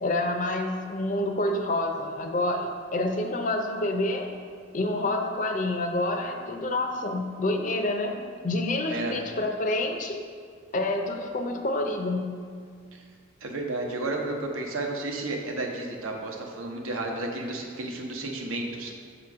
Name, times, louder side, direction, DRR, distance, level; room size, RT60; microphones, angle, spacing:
voice 1, 0.0-4.3 4.7-8.2 8.4-10.2 10.7-12.4, left 2 dB, 40° left, 4 dB, 0.5 m, -28 dB
voice 2, 8.9-9.2 12.9-13.0 13.4-18.9, right 2 dB, 90° right, 1 dB, 0.8 m, -32 dB
6.7 x 3.0 x 5.9 m, 2.1 s
head